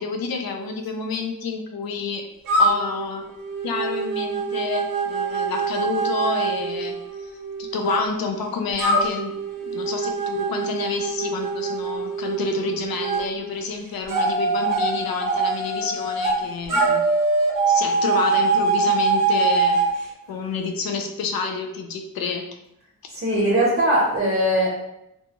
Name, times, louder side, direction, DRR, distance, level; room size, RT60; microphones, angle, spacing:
voice 1, 0.0-2.2 2.6-3.3 3.6-6.9 7.2-7.3 7.6-9.3 9.7-17.0 17.7-19.8 20.3-22.4, left 4 dB, 75° left, 4 dB, 0.5 m, -29 dB
sound 1, 2.5-8.0 8.8-13.2 14.1-16.4 16.7-19.9, right 3 dB, 60° right, 0.7 m, -23 dB
voice 2, 23.1-24.7, right 1 dB, 25° right, -5 dB, 0.7 m, -20 dB
2.6 x 2.2 x 2.8 m, 0.82 s
wide cardioid pair, 105°, 36 cm